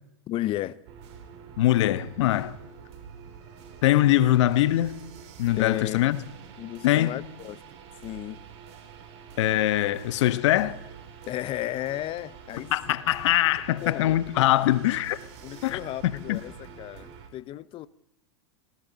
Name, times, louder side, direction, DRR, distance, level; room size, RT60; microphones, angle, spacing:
voice 1, 0.3-0.8 5.6-6.0 6.6-7.6 8.0-8.4 11.3-12.7 13.8-14.2 15.4-17.9, left 14 dB, 35° left, 0.7 m, -34 dB
sound 1, 0.9-17.3, right 7 dB, 60° right, 3.1 m, -46 dB
voice 2, 1.6-2.6 3.8-5.0 5.4-6.2 6.8-7.2 9.4-10.8 12.7-15.2 15.6-16.4, left 14 dB, 65° left, 1.1 m, -23 dB
19.0 x 18.0 x 4.1 m
hypercardioid pair, 120°, 16 cm